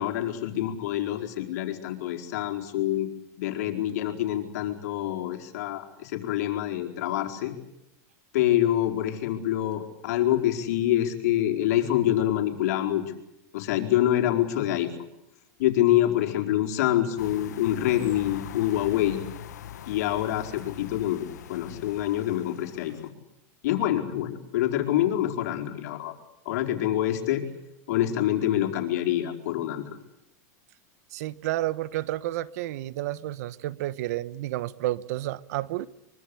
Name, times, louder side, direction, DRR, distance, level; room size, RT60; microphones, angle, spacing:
voice 1, 0.0-3.1 3.4-7.5 8.3-13.0 13.5-14.9 15.6-19.2 19.9-21.2 21.5-23.0 23.6-26.1 26.4-27.4 27.9-30.0, left 12 dB, 70° left, 4.7 m, -26 dB
sound 1, 17.2-23.1, left 10 dB, 90° left, 1.7 m, -42 dB
voice 2, 31.1-35.9, right 15 dB, 70° right, 1.2 m, -31 dB
24.0 x 24.0 x 8.6 m
supercardioid pair, 125°, 9 cm